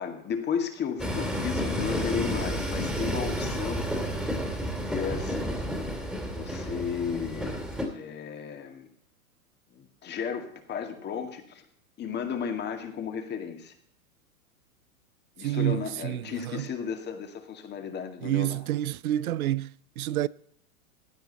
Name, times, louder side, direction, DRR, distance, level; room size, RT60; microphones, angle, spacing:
voice 1, 0.0-4.6 4.9-5.6 5.9-7.7 7.9-8.9 9.7-11.7 12.0-13.7 15.4-18.6, left 7 dB, 25° left, 2.1 m, -34 dB
Train, 1.0-7.9, equal, ahead, 2.6 m, -31 dB
voice 2, 15.4-16.7 18.2-20.3, right 14 dB, 75° right, 0.6 m, -29 dB
16.0 x 10.5 x 4.1 m
hypercardioid pair, 120°, 43 cm